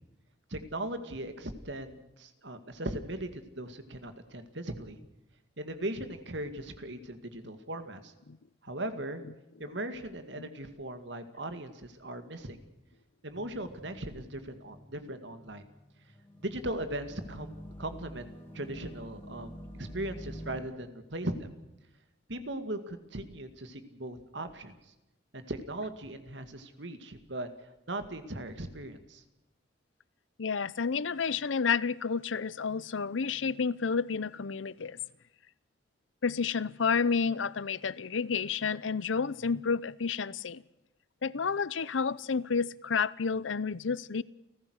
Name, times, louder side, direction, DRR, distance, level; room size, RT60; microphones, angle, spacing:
voice 1, 0.5-5.0 5.6-8.1 8.6-9.2 9.6-12.6 13.2-15.6 16.4-17.5 17.8-18.3 18.5-21.5 22.3-24.7 25.3-27.5 27.9-29.2, right 1 dB, 70° right, 9 dB, 2.2 m, -38 dB
sound 1, 13.3-20.6, equal, 10° left, 4.5 m, -48 dB
voice 2, 30.4-35.0 36.2-40.6 41.2-44.2, left 5 dB, 85° left, 21 dB, 0.7 m, -30 dB
30.0 x 14.5 x 6.5 m, 0.95 s
head